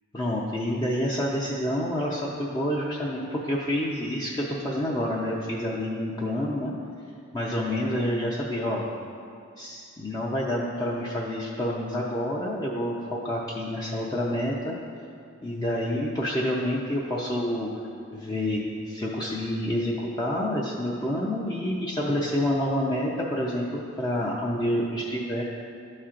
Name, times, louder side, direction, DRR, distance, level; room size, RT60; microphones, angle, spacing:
voice 1, 0.1-6.7 7.3-8.8 9.6-14.8 15.4-17.7 18.1-25.4, left 1 dB, 20° left, -5 dB, 0.5 m, -28 dB
12.0 x 4.3 x 2.5 m, 2.4 s
head